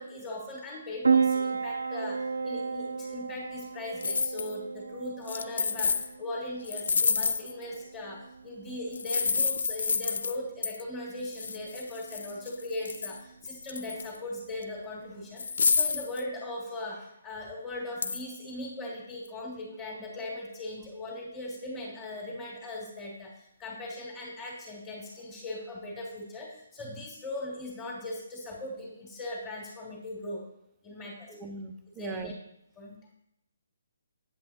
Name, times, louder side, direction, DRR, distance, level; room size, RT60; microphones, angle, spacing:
voice 1, 0.0-30.5 30.8-31.3 32.0-32.3 32.8-33.0, left 1 dB, 25° left, -4 dB, 1.8 m, -39 dB
Piano, 1.0-16.0, right 5 dB, 90° right, 0.6 m, -34 dB
sound 1, 4.0-4.6 5.3-6.1 6.7-7.6 8.9-10.4 10.6-10.8 11.2-13.2 13.5-14.2 14.6-14.7 15.4-16.2 18.0-18.2, left 5 dB, 70° left, 0.4 m, -29 dB
voice 2, 31.3-32.3, right 3 dB, 15° right, 6 dB, 0.6 m, -39 dB
8.2 x 7.6 x 2.9 m, 0.80 s
hypercardioid pair, 150°, 0 cm